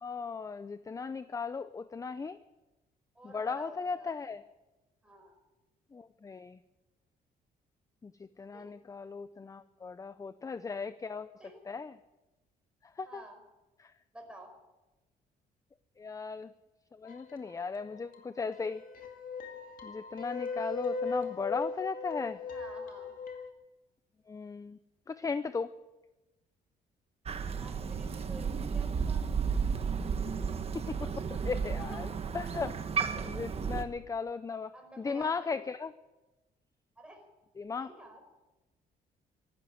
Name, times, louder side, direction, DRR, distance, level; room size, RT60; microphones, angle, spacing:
voice 1, 0.0-2.4 3.2-4.4 5.9-6.6 8.0-8.1 8.4-11.3 11.7-11.9 13.0-13.2 13.8-13.9 16.0-16.5 17.0-18.8 19.8-22.4 24.3-24.8 25.1-25.7 30.7-32.1 32.3-32.7 33.2-35.9 37.6-37.9, left 5 dB, 20° left, 13 dB, 0.6 m, -37 dB
voice 2, 3.2-4.3 5.0-5.4 8.5-8.8 11.4-11.6 13.0-13.4 14.1-14.5 22.5-23.1 27.5-29.3 31.8-32.0 32.5-32.7 34.7-35.6 37.0-37.2 37.7-38.2, right 1 dB, 5° right, 3 dB, 5.0 m, -51 dB
sound 1, 17.1-18.2 18.5-23.5, left 4 dB, 60° left, 2.2 m, -38 dB
Crow, 27.3-33.8, right 6 dB, 40° right, 1.3 m, -33 dB
14.5 x 12.0 x 7.9 m, 1.0 s
cardioid pair, 105°, 16 cm